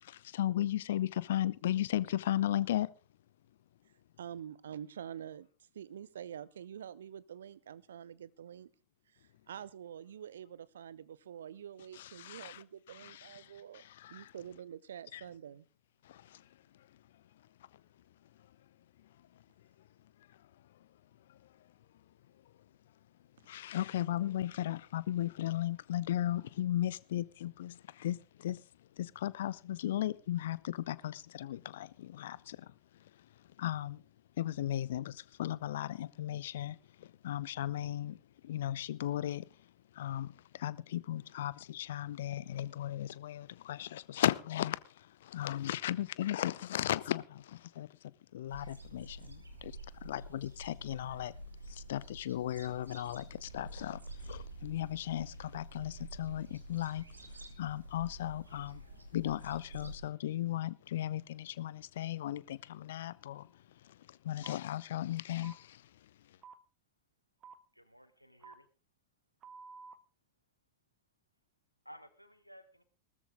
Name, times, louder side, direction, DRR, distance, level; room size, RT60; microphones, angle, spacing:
voice 1, 0.0-2.9 11.9-12.6 12.9-14.3 15.1-15.2 16.0-16.4 21.3-21.4 23.5-28.6 29.0-32.7 33.6-34.0 34.4-38.2 38.4-39.5 39.9-47.9 48.3-51.3 51.7-58.8 59.1-63.5 63.8-65.8, left 12 dB, 60° left, 0.7 m, -36 dB
voice 2, 4.2-5.5 5.7-8.7 9.1-13.8 14.1-15.6, right 9 dB, 65° right, 0.8 m, -47 dB
sound 1, 48.5-60.0, right 1 dB, 80° right, 2.5 m, -49 dB
sound 2, 64.4-64.6 65.4-65.6 66.4-66.6 67.4-67.6 68.4-68.6 69.4-70.0, right 5 dB, 30° right, 1.2 m, -51 dB
voice 3, 67.7-68.7 71.8-72.8, equal, 90° left, 1.5 m, -55 dB
18.5 x 13.5 x 3.8 m
figure-of-eight pair, 90°, 0 cm